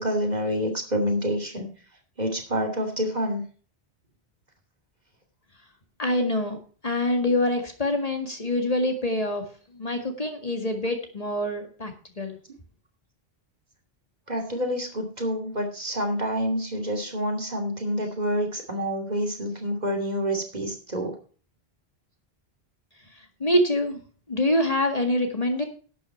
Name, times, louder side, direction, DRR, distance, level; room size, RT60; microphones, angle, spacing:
voice 1, 0.0-1.7 2.2-3.4 14.3-21.1, equal, 45° right, 4 dB, 2.9 m, -27 dB
voice 2, 6.0-6.6 6.8-9.4 9.7-11.9 12.2-12.4 23.4-24.0 24.3-25.6, left 1 dB, 40° left, 4 dB, 2.0 m, -25 dB
11.5 x 8.7 x 4.4 m, 0.40 s
omnidirectional pair, 1.0 m